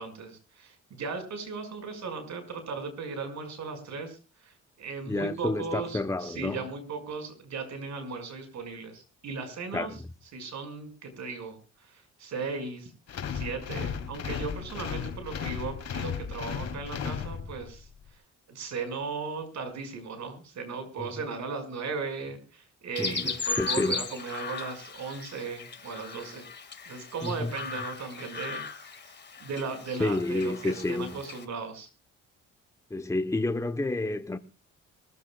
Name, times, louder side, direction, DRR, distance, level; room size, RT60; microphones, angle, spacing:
voice 1, 0.0-9.9 10.3-12.9 13.3-17.9 18.5-26.5 26.9-29.1 29.4-31.9, right 4 dB, 65° right, 5.8 m, -37 dB
voice 2, 5.1-6.6 9.7-9.9 21.0-21.1 23.0-23.3 23.6-24.0 27.2-27.5 30.0-31.1 32.9-34.4, left 2 dB, 10° left, 1.1 m, -29 dB
sound 1, 13.1-17.8, left 7 dB, 60° left, 3.2 m, -35 dB
Chirp tweet, 22.9-31.4, left 4 dB, 35° left, 2.2 m, -37 dB
23.5 x 15.0 x 2.4 m
cardioid pair, 90°, 30 cm